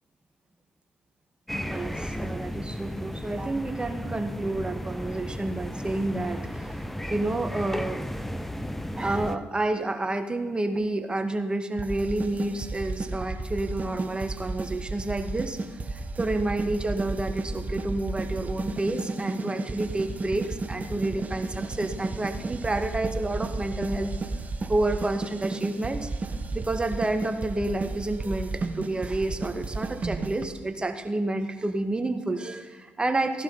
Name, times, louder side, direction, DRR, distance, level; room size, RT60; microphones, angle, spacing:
sound 1, 1.5-9.4, equal, 5° left, 1.1 m, -34 dB
voice 1, 1.5-6.8 7.1-8.0 9.0-24.1 24.7-26.1 26.5-33.4, right 2 dB, 25° right, 7 dB, 1.9 m, -29 dB
sound 2, 11.8-30.4, right 3 dB, 40° right, 1.7 m, -33 dB
16.0 x 11.0 x 5.8 m, 1.2 s
supercardioid pair, 55°, 4 cm